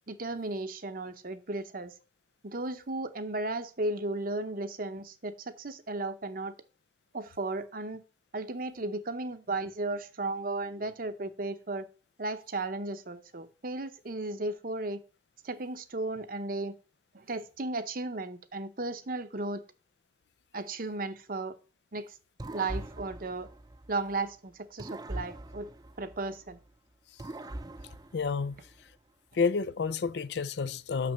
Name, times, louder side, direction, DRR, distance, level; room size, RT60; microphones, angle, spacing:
voice 1, 0.1-1.9 2.4-6.5 7.1-8.0 8.3-11.9 12.2-15.0 15.4-16.7 17.1-19.6 20.5-21.6 21.9-22.1 22.5-23.5 23.9-25.7 26.0-26.6, right 2 dB, 50° right, 0.8 m, -35 dB
sound 1, 22.4-24.3 24.8-26.7 27.2-28.9, right 1 dB, 20° right, 0.5 m, -42 dB
voice 2, 28.1-28.5 29.4-31.1, left 5 dB, 65° left, 0.5 m, -29 dB
6.2 x 5.9 x 6.8 m
head